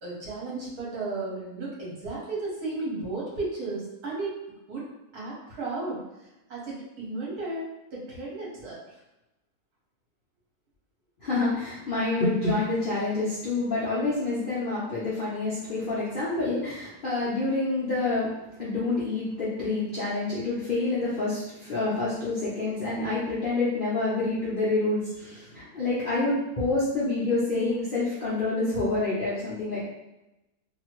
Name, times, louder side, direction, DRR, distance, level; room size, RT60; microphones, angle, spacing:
voice 1, 0.0-4.3 4.7-4.8 5.1-6.0 6.5-8.8, right 3 dB, 65° right, -5 dB, 1.5 m, -34 dB
voice 2, 11.2-18.3 18.6-29.9, left 2 dB, 50° left, -10 dB, 0.6 m, -27 dB
2.8 x 2.8 x 3.0 m, 0.95 s
omnidirectional pair, 1.8 m